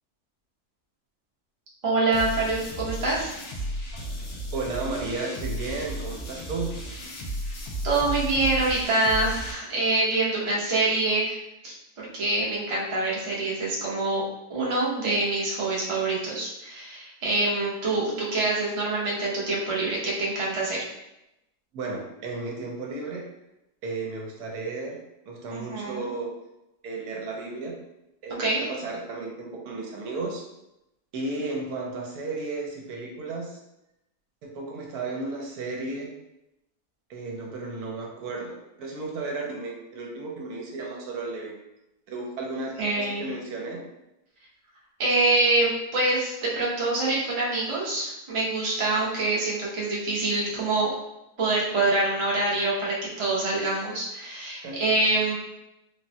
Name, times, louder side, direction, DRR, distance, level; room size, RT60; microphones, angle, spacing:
voice 1, 1.8-3.3 7.8-11.4 11.6-14.2 14.5-20.8 25.5-26.1 28.4-28.6 42.8-43.3 45.0-50.9 51.4-55.3, right 2 dB, 50° right, -5 dB, 0.3 m, -25 dB
sound 1, 2.1-9.5, equal, 75° left, 1.2 m, -34 dB
voice 2, 4.5-6.8 21.7-23.2 23.8-25.0 25.3-26.3 26.8-27.7 28.2-30.4 31.1-33.6 34.4-36.1 37.1-41.6 42.1-43.8 54.6-55.0, right 3 dB, 75° right, -1 dB, 1.1 m, -34 dB
3.6 x 2.1 x 2.6 m, 0.89 s
omnidirectional pair, 1.7 m